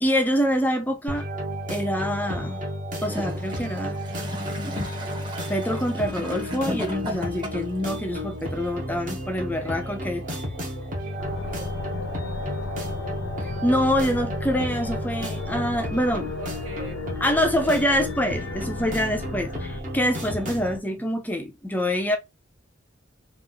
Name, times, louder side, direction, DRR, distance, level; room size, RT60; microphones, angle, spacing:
voice 1, 0.0-1.3 1.7-2.6 3.0-4.0 5.5-10.2 13.6-16.3 17.2-22.2, equal, 10° left, 0.5 m, -25 dB
sound 1, 1.1-20.8, equal, 40° right, 1.3 m, -33 dB
Gurgling / Toilet flush, 2.9-7.8 8.6-8.7, left 1 dB, 25° right, 1.1 m, -35 dB
voice 2, 9.6-13.1 16.4-17.8, right 2 dB, 70° right, 1.9 m, -45 dB
sound 2, 11.2-19.8, left 3 dB, 75° left, 0.5 m, -35 dB
3.5 x 2.5 x 3.8 m
head